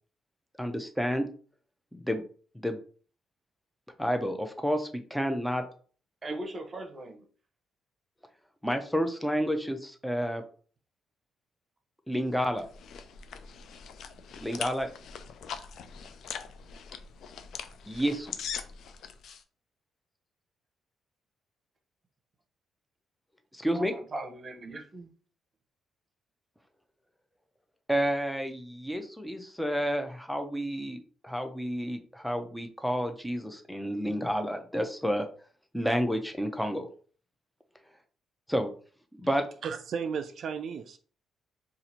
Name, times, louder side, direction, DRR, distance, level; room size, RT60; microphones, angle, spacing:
voice 1, 0.6-1.2 1.9-2.2 2.5-2.8 4.0-5.6 8.6-10.4 12.1-12.7 14.4-14.9 17.9-18.3 23.5-23.9 27.9-31.0 31.2-35.3 35.7-36.9 38.5-38.7 39.1-39.4, equal, ahead, 0.5 m, -30 dB
voice 2, 6.2-7.3 23.7-25.1, right 2 dB, 35° right, 0.8 m, -39 dB
sound 1, 12.3-19.4, left 7 dB, 70° left, 0.3 m, -42 dB
voice 3, 39.6-41.0, right 6 dB, 60° right, 0.3 m, -34 dB
2.7 x 2.5 x 4.2 m
cardioid pair, 90°, 0 cm